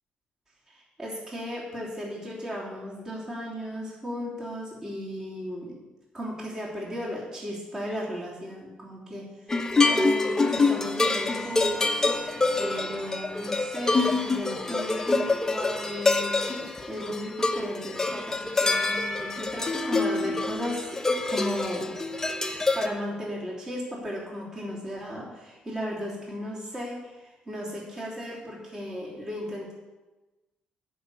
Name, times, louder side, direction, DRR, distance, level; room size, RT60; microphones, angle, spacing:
voice 1, 0.7-5.8 6.1-9.3 9.9-12.1 12.6-16.4 16.9-20.9 21.3-21.9 22.7-29.7, equal, 20° right, -4 dB, 3.0 m, -35 dB
sound 1, 9.5-22.9, left 3 dB, 15° left, 0.9 m, -26 dB
10.5 x 5.5 x 8.4 m, 1.1 s
cardioid pair, 120°, 3 cm